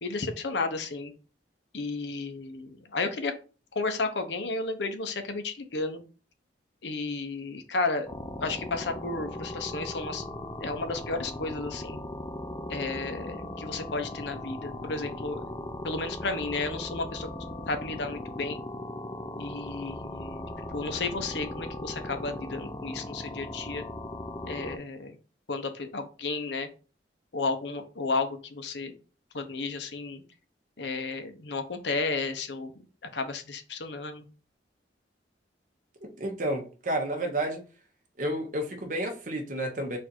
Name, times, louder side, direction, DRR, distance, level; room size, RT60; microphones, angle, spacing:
voice 1, 0.0-1.1 1.7-3.3 3.7-6.0 6.8-8.1 8.4-10.2 10.6-12.0 12.7-15.5 15.8-17.3 17.7-18.6 19.4-23.8 24.4-25.2 25.5-26.7 27.3-28.9 29.3-30.2 30.8-32.7 33.1-34.2, left 3 dB, 80° left, 0.8 m, -33 dB
sound 1, 8.1-24.8, left 1 dB, 20° left, 0.5 m, -38 dB
voice 2, 36.0-37.6 38.2-40.0, right 1 dB, 50° right, 1.1 m, -31 dB
4.3 x 2.7 x 4.4 m
head